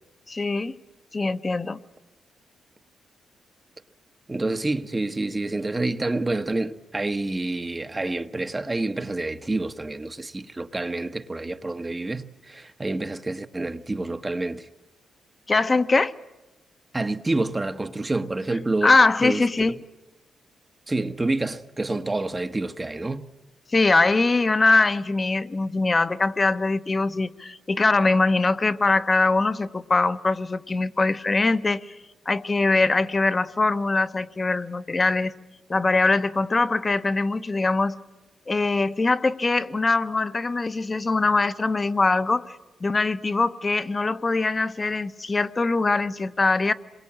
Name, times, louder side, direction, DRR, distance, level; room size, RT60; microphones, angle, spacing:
voice 1, 0.3-0.8 1.1-1.8 15.5-16.1 18.8-19.8 23.7-32.0 32.3-35.3 35.7-37.9 38.5-42.5 42.8-46.7, left 3 dB, 30° left, 1.0 m, -22 dB
voice 2, 4.3-14.7 16.9-18.9 19.2-19.4 20.9-23.3, right 2 dB, 20° right, 1.1 m, -28 dB
26.5 x 23.0 x 8.7 m
cardioid pair, 90°, 0 cm